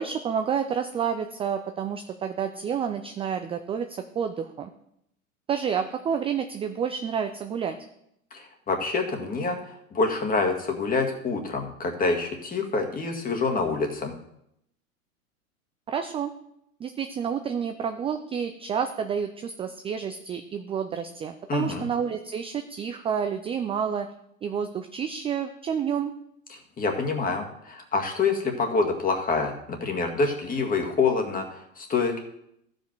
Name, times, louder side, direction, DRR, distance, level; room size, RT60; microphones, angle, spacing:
voice 1, 0.0-4.7 5.5-7.8 15.9-16.3 16.8-24.1 24.4-26.1, right 7 dB, 15° right, 7 dB, 0.4 m, -29 dB
voice 2, 8.3-14.1 21.5-21.9 26.8-32.2, left 4 dB, 20° left, 3 dB, 1.9 m, -26 dB
14.5 x 5.3 x 4.6 m, 0.76 s
hypercardioid pair, 90°, 40 cm